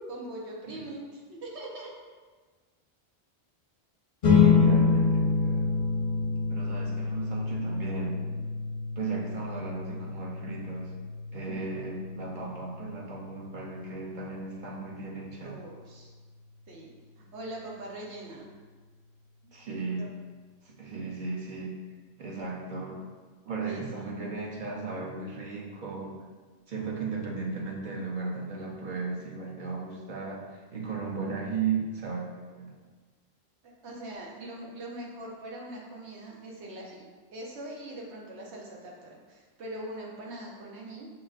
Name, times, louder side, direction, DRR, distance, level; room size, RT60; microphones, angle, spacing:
voice 1, 0.1-1.9 15.4-16.1 16.7-18.5 19.4-19.5 19.9-20.1 23.6-23.8 33.6-37.0 37.3-41.1, right 1 dB, 90° right, -2 dB, 1.1 m, -42 dB
sound 1, 4.2-15.0, left 5 dB, 50° left, 0.6 m, -27 dB
voice 2, 4.3-5.7 6.5-8.2 9.0-10.9 11.3-15.6 19.5-20.1 20.6-21.8 22.2-23.1 23.4-26.2 26.7-32.8, right 4 dB, 50° right, -2 dB, 0.7 m, -35 dB
5.7 x 2.6 x 2.4 m, 1.4 s
omnidirectional pair, 1.1 m